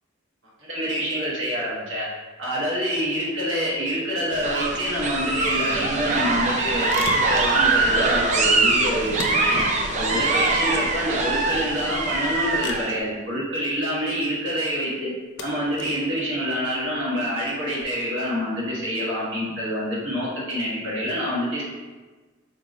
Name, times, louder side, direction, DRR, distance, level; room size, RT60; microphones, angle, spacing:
voice 1, 0.6-2.1 2.4-9.6 10.0-15.1 15.4-21.6, equal, 75° right, -6 dB, 1.1 m, -26 dB
sound 1, 4.3-12.9, right 3 dB, 35° right, 0.3 m, -23 dB
sound 2, 6.1-17.8, left 3 dB, 60° left, 0.4 m, -42 dB
3.3 x 2.1 x 4.0 m, 1.3 s
head